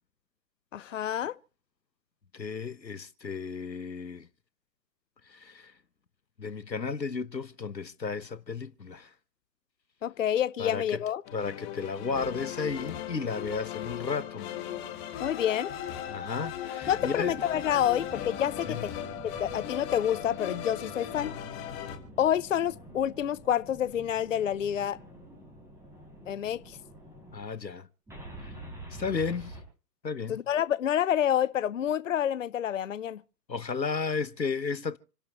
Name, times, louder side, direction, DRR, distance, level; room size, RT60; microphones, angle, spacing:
voice 1, 0.7-1.3 10.0-11.2 15.2-15.7 16.9-18.9 19.2-21.4 22.2-25.0 26.3-26.8 30.3-33.2, left 10 dB, 50° left, 0.7 m, -28 dB
voice 2, 2.3-4.3 5.3-5.7 6.4-9.1 10.6-11.0 11.3-14.5 16.1-17.3 18.7-18.9 27.3-27.9 28.9-29.6 30.0-30.4 33.5-35.0, left 5 dB, 90° left, 1.1 m, -33 dB
sound 1, 11.3-22.0, left 10 dB, 20° left, 2.0 m, -38 dB
sound 2, 16.8-27.5 28.1-29.6, right 1 dB, 5° right, 6.2 m, -47 dB
28.5 x 12.0 x 3.0 m
figure-of-eight pair, 130°, 49 cm